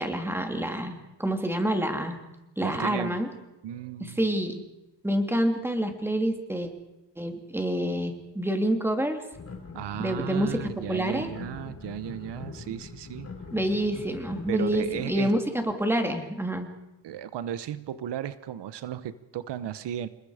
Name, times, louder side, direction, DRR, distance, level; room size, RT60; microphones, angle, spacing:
voice 1, 0.0-2.2 2.6-3.3 4.0-4.6 5.0-6.7 7.2-9.3 10.0-11.3 13.5-16.7, right 1 dB, 5° right, 5 dB, 2.9 m, -27 dB
voice 2, 2.6-3.2 3.6-4.2 9.7-13.3 14.5-15.3 17.0-20.1, right 10 dB, 85° right, 14 dB, 1.1 m, -35 dB
sound 1, 9.3-15.0, left 4 dB, 35° left, 4.6 m, -42 dB
28.0 x 21.0 x 5.0 m, 0.97 s
cardioid pair, 110°, 41 cm